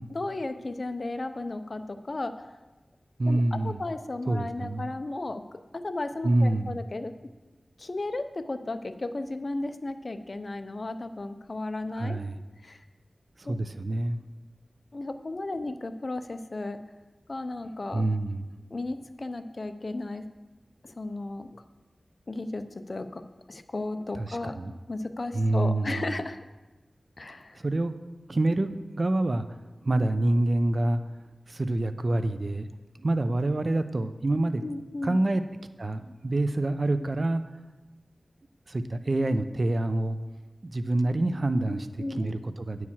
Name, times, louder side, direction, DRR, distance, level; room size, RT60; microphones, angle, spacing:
voice 1, 0.1-2.3 3.3-5.4 5.7-7.1 7.8-12.2 12.6-12.8 13.5-13.6 14.9-16.8 17.3-18.0 18.7-20.2 20.8-21.6 22.3-23.2 23.5-24.6 24.9-26.4 27.2-27.6 34.6-35.2 41.7-42.3, left 2 dB, 50° left, 9 dB, 0.7 m, -34 dB
voice 2, 3.2-3.8 4.3-4.9 6.2-6.8 11.9-12.4 13.4-14.2 17.9-18.4 24.1-24.7 25.3-26.1 27.6-27.9 28.3-29.5 29.8-31.0 31.5-32.7 33.0-34.6 35.0-35.4 35.8-37.4 38.7-40.2 40.6-42.9, right 2 dB, 55° right, 10 dB, 0.6 m, -27 dB
9.7 x 4.7 x 7.2 m, 1.2 s
wide cardioid pair, 55°, 0 cm